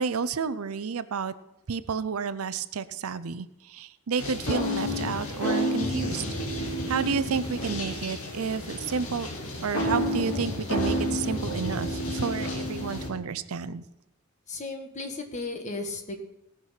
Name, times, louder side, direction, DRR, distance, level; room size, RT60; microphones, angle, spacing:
voice 1, 0.0-1.3 1.7-6.2 6.9-9.3 9.6-13.8, right 5 dB, 90° right, 15 dB, 0.6 m, -31 dB
sound 1, 4.2-13.1, left 2 dB, 85° left, 1.9 m, -38 dB
sound 2, 4.5-8.2 9.7-13.3, equal, 65° left, 4.2 m, -30 dB
voice 2, 14.5-16.2, left 3 dB, 35° left, 4 dB, 1.5 m, -35 dB
18.0 x 6.0 x 5.7 m, 0.86 s
head